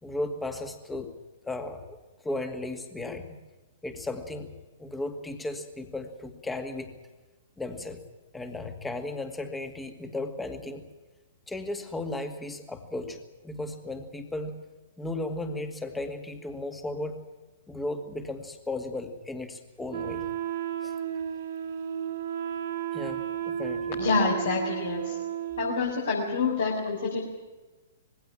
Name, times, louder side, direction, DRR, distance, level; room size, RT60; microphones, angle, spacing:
voice 1, 0.0-1.1 1.4-2.0 2.2-3.4 3.8-4.5 4.8-6.9 7.6-8.0 8.3-10.8 11.5-14.6 15.0-17.2 17.7-20.3 20.8-20.9 22.9-24.4, left 2 dB, 5° left, 6 dB, 2.1 m, -35 dB
Wind instrument woodwind instrument, 19.9-25.8, right 9 dB, 50° right, 1.4 m, -33 dB
voice 2, 23.9-25.2 25.6-27.2, left 4 dB, 60° left, -2 dB, 4.2 m, -27 dB
21.0 x 16.5 x 8.7 m, 1.2 s
figure-of-eight pair, 115°, 0 cm